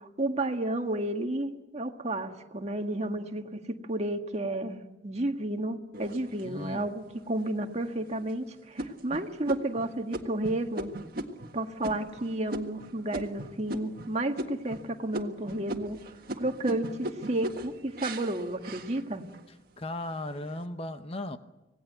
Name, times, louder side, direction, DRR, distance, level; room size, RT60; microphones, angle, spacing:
voice 1, 0.0-3.6 3.9-10.9 11.5-16.0 16.4-16.9 17.3-19.2, right 1 dB, 40° right, 1.7 m, -31 dB
sound 1, 5.9-6.8 7.4-7.5 8.0-8.3 8.8-14.1 14.4-14.9 15.1-19.5 19.9-20.5, right 1 dB, 55° right, 1.7 m, -39 dB
voice 2, 6.4-6.9 19.8-21.4, left 1 dB, 35° left, 1.0 m, -36 dB
26.0 x 18.5 x 8.1 m
head